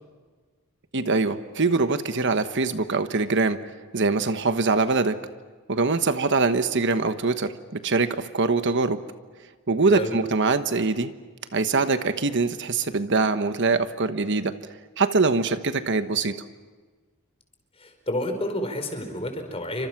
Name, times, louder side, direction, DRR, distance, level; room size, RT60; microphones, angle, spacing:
voice 1, 0.9-3.6 3.9-5.2 5.7-9.0 9.7-11.1 11.5-14.6 15.0-16.4, right 3 dB, 55° right, 10 dB, 1.2 m, -23 dB
voice 2, 17.7-19.9, left 1 dB, 25° left, 5 dB, 4.7 m, -30 dB
29.0 x 25.5 x 6.0 m, 1.4 s
head